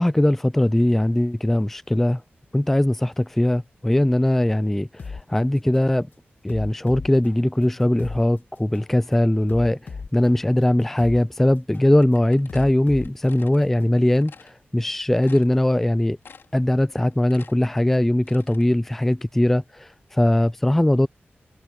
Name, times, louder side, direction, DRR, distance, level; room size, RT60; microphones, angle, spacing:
voice 1, 0.0-2.2 2.5-6.1 6.4-9.8 10.1-16.2 16.5-21.1, left 1 dB, 5° left, 0.3 m, -20 dB
Drumset is jazzy, 5.0-5.2 5.7-5.9 6.5-8.2 8.7-8.9 9.5-11.2 11.7-11.9 12.5-14.0, left 5 dB, 55° left, 1.8 m, -37 dB
sound 1, 12.0-13.6 14.1-14.5 14.9-15.0 15.2-15.9 16.2-16.7 17.0-18.7, left 5 dB, 75° left, 4.1 m, -48 dB
wide cardioid pair, 165°, 4 cm